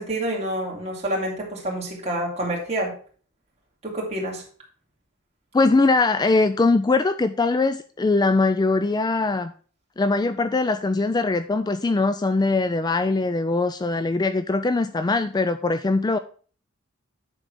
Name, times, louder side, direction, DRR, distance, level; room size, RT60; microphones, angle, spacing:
voice 1, 0.0-2.9 3.8-4.4, right 1 dB, 30° right, -3 dB, 3.2 m, -28 dB
voice 2, 5.5-9.5 10.0-16.2, left 3 dB, 20° left, 10 dB, 0.3 m, -21 dB
9.8 x 3.9 x 6.1 m, 0.41 s
head